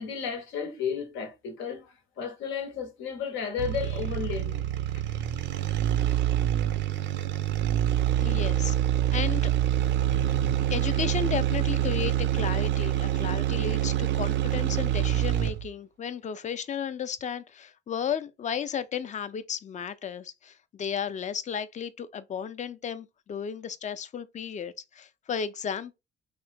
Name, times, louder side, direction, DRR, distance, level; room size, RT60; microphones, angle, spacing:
voice 1, 0.0-4.7 10.0-10.7, left 7 dB, 85° left, 0.7 m, -34 dB
sound 1, 3.6-15.7, right 12 dB, 65° right, 0.4 m, -26 dB
voice 2, 8.2-8.7 9.1-9.5 10.7-26.0, left 7 dB, 35° left, 0.4 m, -34 dB
3.1 x 2.1 x 3.1 m
cardioid pair, 90°, 20 cm